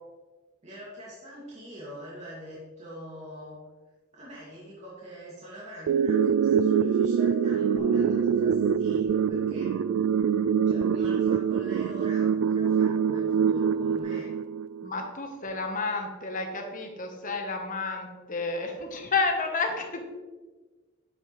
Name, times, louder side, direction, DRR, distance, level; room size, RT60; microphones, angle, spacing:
voice 1, 0.6-3.6 4.1-9.7 10.7-14.3, equal, 35° right, -8 dB, 2.4 m, -44 dB
sound 1, 5.9-14.9, right 7 dB, 85° right, 0.3 m, -24 dB
Bass guitar, 7.8-14.0, right 1 dB, 10° right, 2.0 m, -48 dB
voice 2, 14.8-20.0, left 3 dB, 40° left, 3 dB, 1.2 m, -31 dB
9.6 x 7.3 x 3.3 m, 1.3 s
head